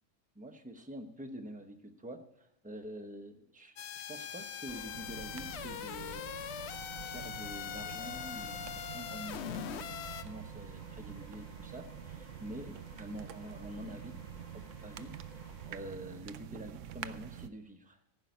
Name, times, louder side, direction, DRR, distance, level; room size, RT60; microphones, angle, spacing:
voice 1, 0.3-6.3 7.1-14.2 14.5-15.2 15.7-18.0, right 1 dB, 5° right, 5 dB, 0.8 m, -47 dB
sound 1, 3.8-10.2, left 9 dB, 60° left, 0.8 m, -42 dB
sound 2, 4.7-16.3, left 1 dB, 35° left, 1.6 m, -54 dB
sound 3, 4.9-17.5, right 11 dB, 70° right, 0.9 m, -47 dB
15.5 x 5.6 x 9.0 m, 0.90 s
omnidirectional pair, 1.4 m